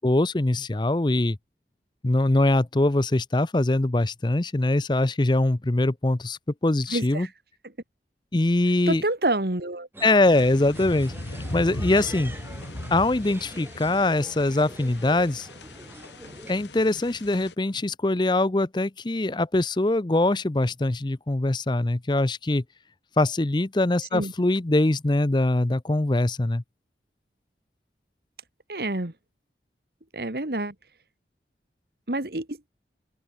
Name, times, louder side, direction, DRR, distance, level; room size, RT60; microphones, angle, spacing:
voice 1, 0.0-1.4 2.0-7.3 8.3-9.0 10.0-12.3 12.9-15.5 16.5-22.6 23.2-26.6, left 2 dB, 25° left, 0.6 m, -23 dB
voice 2, 6.9-7.3 8.9-9.9 24.1-24.3 28.7-29.1 30.1-30.7 32.1-32.6, right 2 dB, 60° right, 2.0 m, -27 dB
sound 1, 9.9-16.6, right 1 dB, 15° right, 2.9 m, -44 dB
sound 2, 10.2-17.5, left 1 dB, 90° left, 2.9 m, -38 dB
open air
head